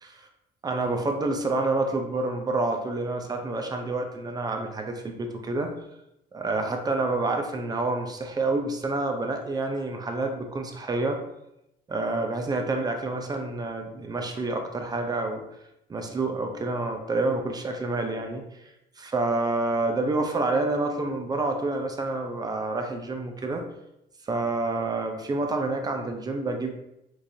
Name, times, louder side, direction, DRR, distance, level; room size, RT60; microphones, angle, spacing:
voice 1, 0.6-5.7 6.3-11.2 11.9-15.4 15.9-18.4 19.0-23.6 24.2-26.7, right 2 dB, 25° right, 4 dB, 0.5 m, -28 dB
4.6 x 2.5 x 2.6 m, 0.84 s
cardioid pair, 110°, 17 cm